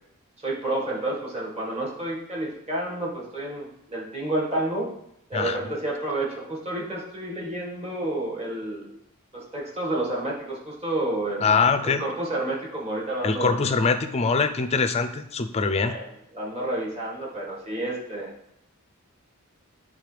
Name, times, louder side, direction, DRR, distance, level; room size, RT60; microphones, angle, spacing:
voice 1, 0.4-4.9 5.3-9.0 9.3-11.5 11.8-13.6 15.8-16.1 16.3-18.3, right 1 dB, 30° right, -4 dB, 1.7 m, -30 dB
voice 2, 11.4-12.0 13.2-15.9, left 4 dB, 30° left, 9 dB, 0.4 m, -23 dB
9.6 x 3.7 x 3.3 m, 0.77 s
head